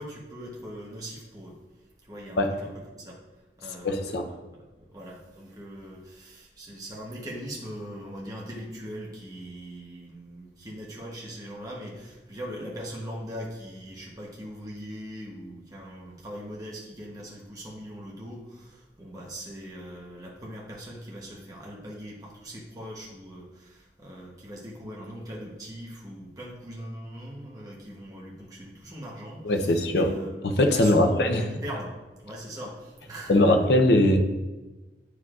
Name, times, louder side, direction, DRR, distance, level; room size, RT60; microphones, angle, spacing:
voice 1, 0.0-1.6 2.0-2.7 3.0-3.2 3.6-30.5 30.7-33.6, equal, 20° right, -3 dB, 1.0 m, -40 dB
voice 2, 3.8-4.2 29.4-30.1 30.4-31.4 33.3-34.2, left 1 dB, 65° left, 5 dB, 0.7 m, -21 dB
9.3 x 4.9 x 2.5 m, 1.1 s
head